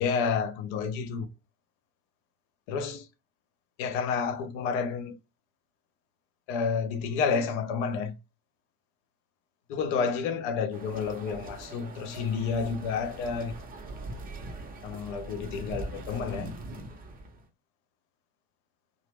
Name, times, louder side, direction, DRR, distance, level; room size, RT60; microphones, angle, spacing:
voice 1, 0.0-1.3 2.7-3.1 3.8-5.2 6.5-8.2 9.7-13.5 14.8-16.6, left 5 dB, 55° left, 0.6 m, -30 dB
sound 1, 10.7-17.5, right 2 dB, 20° right, 0.6 m, -42 dB
2.8 x 2.0 x 3.3 m
figure-of-eight pair, 60°, 43 cm